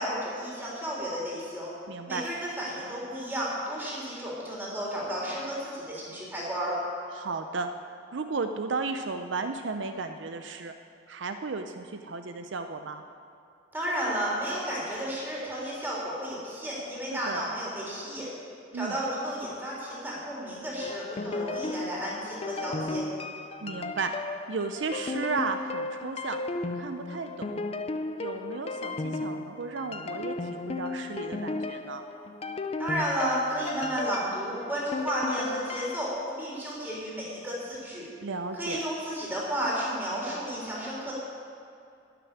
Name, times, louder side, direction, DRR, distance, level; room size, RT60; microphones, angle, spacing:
voice 1, 0.0-1.7 2.1-6.8 13.7-18.4 18.7-23.0 32.8-36.1 36.4-38.1 38.5-41.1, equal, 10° right, -5 dB, 3.7 m, -32 dB
voice 2, 1.9-2.2 7.1-7.7 8.1-10.7 11.1-13.0 17.1-17.4 18.7-19.0 23.6-26.4 26.7-27.7 28.2-32.0 38.2-38.8, right 4 dB, 75° right, 8 dB, 0.6 m, -34 dB
sound 1, 20.8-36.1, left 3 dB, 35° left, 0.5 m, -35 dB
12.0 x 6.9 x 9.8 m, 2.4 s
head